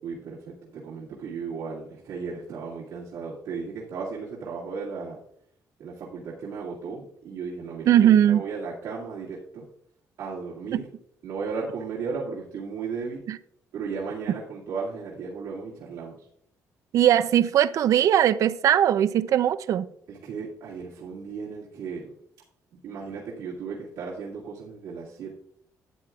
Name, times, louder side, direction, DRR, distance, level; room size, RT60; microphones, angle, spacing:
voice 1, 0.0-5.2 5.8-7.9 8.3-9.6 10.2-10.9 11.2-13.2 13.7-16.1 20.1-22.1 22.7-25.4, right 5 dB, 85° right, 2.2 m, -35 dB
voice 2, 7.9-8.4 10.7-10.8 13.3-13.4 16.9-19.9, right 10 dB, 65° right, 0.5 m, -20 dB
12.5 x 9.1 x 2.4 m
cardioid pair, 135°, 6 cm